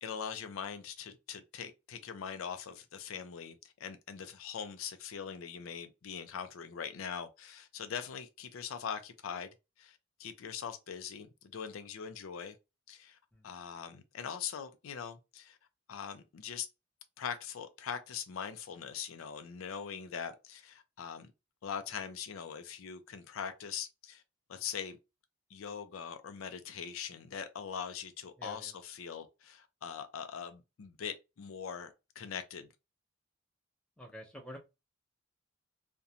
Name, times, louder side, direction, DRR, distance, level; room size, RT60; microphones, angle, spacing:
voice 1, 0.0-9.5 9.8-12.5 12.9-13.2 13.4-15.6 15.9-16.7 17.2-21.3 21.6-24.2 24.5-25.0 25.5-32.7, left 7 dB, 85° left, 0.4 m, -42 dB
voice 2, 28.4-28.7 34.0-34.6, left 1 dB, 5° left, 0.6 m, -47 dB
2.5 x 2.1 x 2.7 m
head